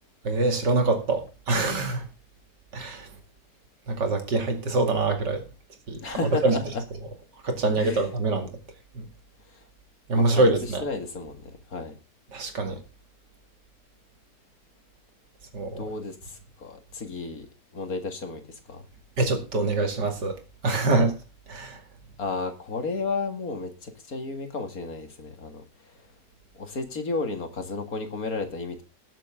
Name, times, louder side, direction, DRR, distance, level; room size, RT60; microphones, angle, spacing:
voice 1, 0.2-2.0 2.7-3.1 3.9-5.4 5.9-6.6 7.4-8.5 8.9-9.0 10.1-10.8 12.3-12.8 15.5-15.9 19.2-21.2 21.5-21.8, right 2 dB, 80° right, 2.9 m, -25 dB
voice 2, 6.0-6.8 7.8-8.1 10.1-10.5 10.8-12.0 15.8-17.5 17.7-18.4 18.7-18.8 22.2-25.6 26.5-28.8, left 3 dB, 55° left, 2.4 m, -32 dB
20.0 x 7.6 x 3.6 m
omnidirectional pair, 1.8 m